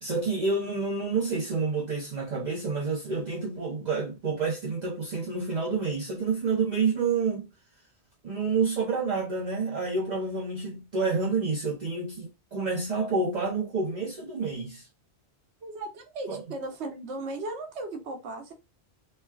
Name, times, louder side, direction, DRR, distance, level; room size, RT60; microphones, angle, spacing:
voice 1, 0.0-7.4 8.2-14.9 16.3-16.4, right 4 dB, 45° right, 0.7 m, -28 dB
voice 2, 15.6-18.5, right 2 dB, 80° right, 1.0 m, -36 dB
3.1 x 2.2 x 2.2 m
omnidirectional pair, 1.1 m